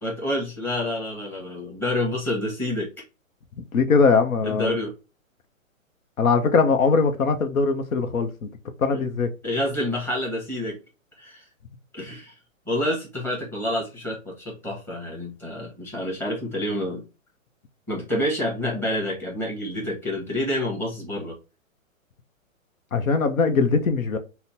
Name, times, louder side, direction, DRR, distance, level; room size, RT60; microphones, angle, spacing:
voice 1, 0.0-2.9 4.4-4.9 8.9-9.0 9.4-10.8 11.2-11.5 11.9-12.3 12.7-17.0 17.9-21.4, left 1 dB, 5° left, 1.0 m, -28 dB
voice 2, 3.7-4.8 6.2-8.5 8.8-9.3 22.9-24.2, left 4 dB, 80° left, 0.7 m, -21 dB
4.1 x 2.1 x 2.6 m
hypercardioid pair, 135°, 41 cm